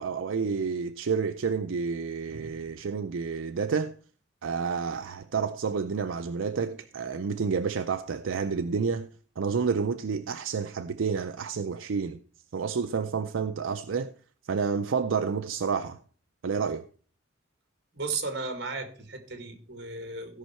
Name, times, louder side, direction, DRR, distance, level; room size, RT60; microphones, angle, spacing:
voice 1, 0.0-3.9 4.4-9.1 9.4-12.2 12.5-14.1 14.5-16.0 16.4-16.8, right 5 dB, 80° right, 0.5 m, -29 dB
voice 2, 17.9-20.4, right 3 dB, 55° right, 1.9 m, -35 dB
16.0 x 5.6 x 4.4 m
head